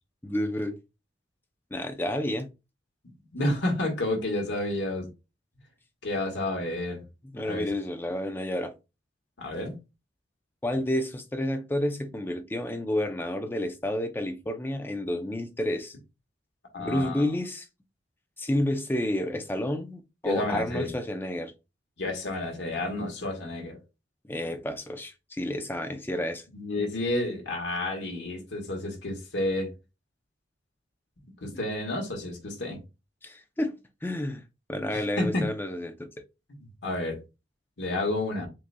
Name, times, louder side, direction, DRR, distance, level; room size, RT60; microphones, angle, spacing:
voice 1, 0.2-0.8 1.7-2.5 3.5-3.6 7.3-8.7 10.6-16.0 16.8-17.7 18.4-21.5 24.2-26.4 33.2-33.7 34.0-34.4 34.7-36.1, left 1 dB, 10° left, 0.5 m, -30 dB
voice 2, 3.3-5.1 6.0-7.0 7.4-7.7 9.4-9.8 16.7-17.2 20.2-20.9 22.0-23.8 26.5-29.7 31.4-32.8 34.9-35.5 36.8-37.2 37.8-38.5, left 1 dB, 80° left, 1.5 m, -30 dB
7.5 x 2.7 x 2.2 m
head